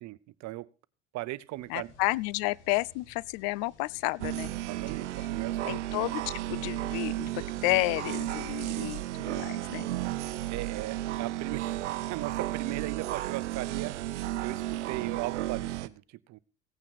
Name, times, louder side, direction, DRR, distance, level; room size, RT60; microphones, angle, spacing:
voice 1, 0.0-0.7 1.1-1.9 4.7-5.8 8.7-9.0 10.5-11.7 12.1-14.0 14.4-16.4, right 17 dB, 55° right, 0.8 m, -38 dB
sound 1, 1.5-7.0, left 4 dB, 85° left, 3.1 m, -57 dB
voice 2, 1.7-4.5 5.6-9.9, left 22 dB, 70° left, 0.5 m, -31 dB
sound 2, 4.2-15.9, right 15 dB, 90° right, 0.8 m, -33 dB
16.5 x 9.0 x 4.2 m
hypercardioid pair, 85°, 35 cm